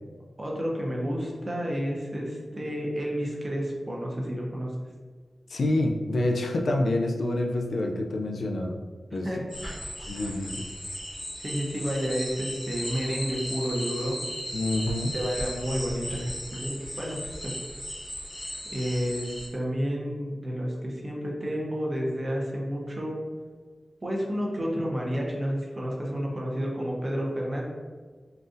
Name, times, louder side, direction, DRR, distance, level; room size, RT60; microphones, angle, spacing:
voice 1, 0.4-4.8 9.2-9.4 11.4-14.2 15.1-17.6 18.7-19.3 19.5-23.2 24.0-27.6, equal, 30° right, -3 dB, 0.7 m, -30 dB
voice 2, 5.5-8.8 9.1-9.3 10.1-10.7 14.5-15.1, left 1 dB, 75° left, 1 dB, 0.4 m, -27 dB
sound 1, 9.5-19.5, equal, 20° left, 1.0 m, -36 dB
3.8 x 2.5 x 2.5 m, 1.5 s
wide cardioid pair, 95°, 0 cm